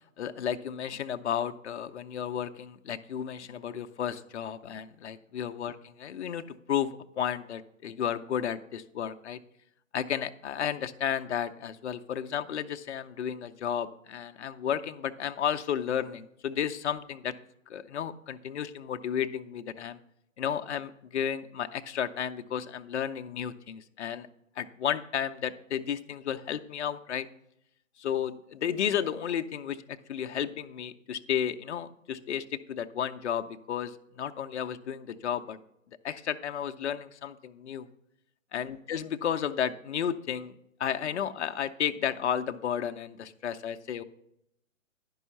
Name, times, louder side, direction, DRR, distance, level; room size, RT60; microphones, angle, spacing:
voice 1, 0.2-9.4 9.9-17.3 17.7-20.0 20.4-24.3 24.6-27.3 28.0-35.6 36.0-37.9 38.5-40.5 40.8-44.0, left 9 dB, 55° left, 7 dB, 0.6 m, -33 dB
10.5 x 5.5 x 5.8 m, 0.81 s
hypercardioid pair, 150°, 40 cm